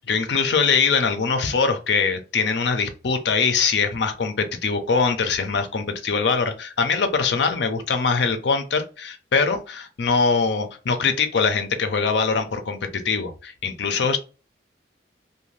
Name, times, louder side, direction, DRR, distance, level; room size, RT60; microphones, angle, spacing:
voice 1, 0.1-14.2, left 5 dB, 65° left, 7 dB, 0.5 m, -22 dB
2.6 x 2.2 x 3.1 m, 0.34 s
head